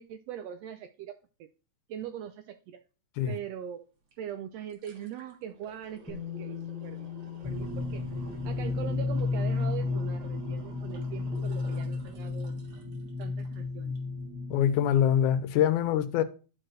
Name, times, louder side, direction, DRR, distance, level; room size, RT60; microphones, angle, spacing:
voice 1, 0.0-1.5 1.9-2.8 3.3-3.9 4.2-7.1 7.4-12.6 13.2-14.0, right 10 dB, 80° right, 1.5 m, -41 dB
sound 1, 4.1-4.2 4.5-13.6 14.0-14.1, right 3 dB, 50° right, 2.3 m, -50 dB
Bass guitar, 6.1-12.1, left 11 dB, 5° left, 0.6 m, -45 dB
sound 2, 7.4-15.0, left 4 dB, 25° left, 2.0 m, -33 dB
voice 2, 14.5-16.2, left 10 dB, 85° left, 2.2 m, -24 dB
11.5 x 4.6 x 3.1 m
omnidirectional pair, 3.4 m